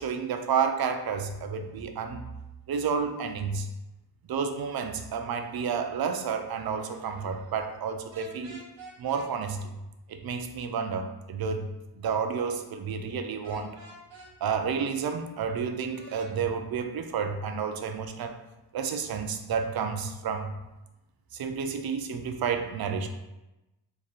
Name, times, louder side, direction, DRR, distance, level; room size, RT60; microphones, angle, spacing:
voice 1, 0.0-2.2 2.7-3.7 4.3-8.6 9.0-9.8 10.1-11.7 12.0-13.8 14.4-18.4 18.7-20.5 21.3-23.1, right 6 dB, 55° right, 6 dB, 0.6 m, -30 dB
sound 1, 8.1-9.3 13.4-14.3 15.9-16.3, equal, 85° right, 1.0 m, -47 dB
3.3 x 2.4 x 4.2 m, 0.97 s
cardioid pair, 65°, 45 cm